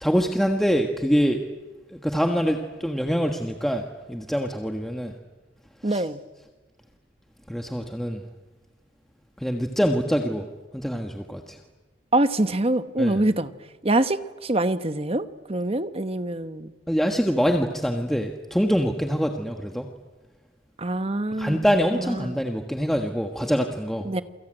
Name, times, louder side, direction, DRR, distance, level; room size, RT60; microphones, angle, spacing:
voice 1, 0.0-1.4 1.9-5.1 5.8-6.0 7.5-8.2 9.4-10.5 10.7-11.6 13.0-13.2 16.9-19.9 21.4-24.1, equal, ahead, 3 dB, 1.4 m, -24 dB
voice 2, 5.8-6.2 12.1-13.5 13.8-16.7 20.8-21.6 21.9-22.4 24.0-24.2, right 1 dB, 30° right, 11 dB, 1.1 m, -25 dB
28.5 x 23.0 x 9.0 m, 1.2 s
head